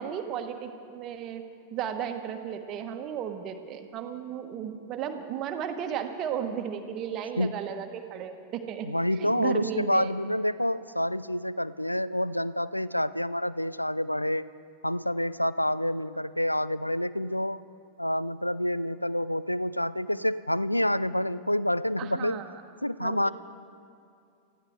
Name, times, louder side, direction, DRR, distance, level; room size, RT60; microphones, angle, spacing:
voice 1, 0.0-1.4 1.7-10.1 22.0-22.6 23.0-23.3, right 8 dB, 35° right, 6 dB, 1.3 m, -34 dB
voice 2, 8.8-14.4 14.8-17.6 18.0-22.4 22.8-23.3, left 1 dB, 90° left, 17 dB, 0.3 m, -28 dB
24.5 x 15.0 x 3.7 m, 2.5 s
figure-of-eight pair, 90°, 0 cm